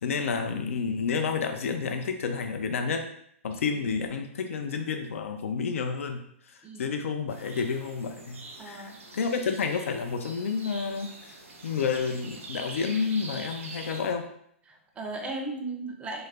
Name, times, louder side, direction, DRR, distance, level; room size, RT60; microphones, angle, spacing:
voice 1, 0.0-3.1 3.4-6.2 6.5-14.3, left 5 dB, 75° left, 5 dB, 0.3 m, -30 dB
voice 2, 3.5-3.8 6.6-6.8 8.6-9.0 14.7-16.3, right 2 dB, 15° right, 2 dB, 0.4 m, -37 dB
sound 1, 7.3-14.1, right 2 dB, 85° right, 0.5 m, -44 dB
2.3 x 2.0 x 3.2 m, 0.69 s
hypercardioid pair, 125°, 7 cm